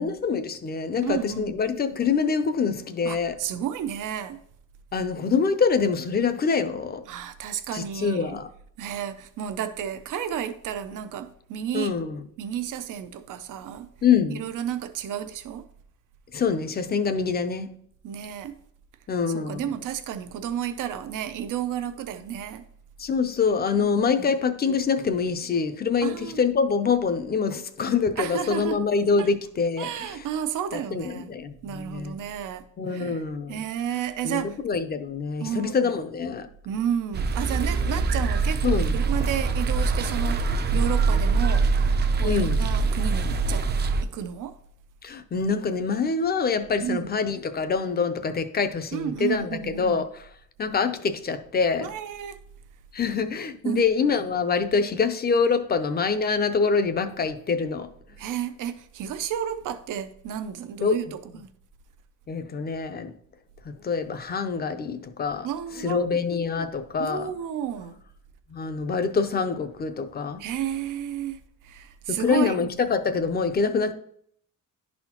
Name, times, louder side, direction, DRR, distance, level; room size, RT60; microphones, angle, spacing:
voice 1, 0.0-3.3 4.9-7.0 7.7-8.5 11.7-12.2 14.0-14.4 16.3-17.7 19.1-19.7 23.0-30.1 30.9-32.1 32.8-33.6 34.2-36.5 38.6-38.9 42.2-42.7 45.0-50.2 50.6-51.9 52.9-57.9 60.8-61.0 62.3-63.1 63.8-65.5 65.8-67.3 68.5-70.5 72.1-73.9, left 5 dB, 30° left, 0.5 m, -25 dB
voice 2, 1.0-1.6 3.0-4.4 7.1-8.4 8.8-11.9 12.4-13.9 14.3-15.6 18.0-18.6 19.3-22.6 23.8-23.9 24.2-24.3 26.0-26.4 28.2-28.8 29.2-29.3 29.8-31.3 31.6-33.2 33.5-34.6 35.4-35.9 36.6-41.7 42.1-43.6 44.1-44.5 46.8-47.1 48.9-50.0 51.8-52.4 53.6-53.9 58.2-61.5 65.4-66.2 67.0-68.0 70.4-72.7, right 9 dB, 90° right, 0.6 m, -32 dB
sound 1, 37.1-44.0, right 4 dB, 35° right, 0.4 m, -23 dB
11.0 x 4.2 x 2.9 m
wide cardioid pair, 170°, 31 cm